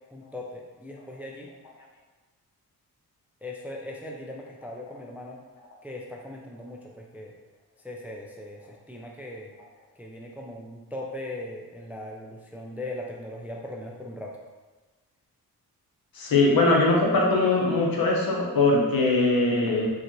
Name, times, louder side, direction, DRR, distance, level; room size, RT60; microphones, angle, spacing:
voice 1, 0.1-1.5 3.4-5.4 5.8-7.3 7.8-9.5 10.0-14.4, left 1 dB, 5° right, 0 dB, 0.4 m, -39 dB
voice 2, 16.1-19.9, left 2 dB, 55° left, -2 dB, 0.9 m, -21 dB
3.7 x 2.4 x 3.0 m, 1.2 s
supercardioid pair, 40°, 42 cm